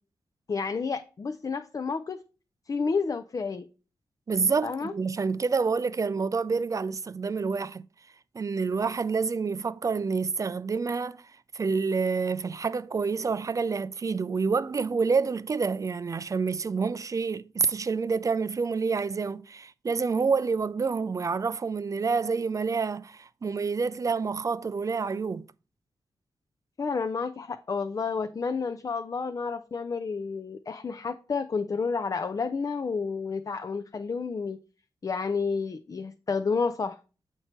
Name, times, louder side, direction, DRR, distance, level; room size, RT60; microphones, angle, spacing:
voice 1, 0.5-2.2 2.7-3.6 4.6-4.9 26.8-34.6 35.0-37.0, left 5 dB, 40° left, 0.5 m, -30 dB
voice 2, 4.3-7.8 8.3-25.5, right 5 dB, 40° right, 0.4 m, -28 dB
6.5 x 4.5 x 4.3 m
cardioid pair, 55°, 9 cm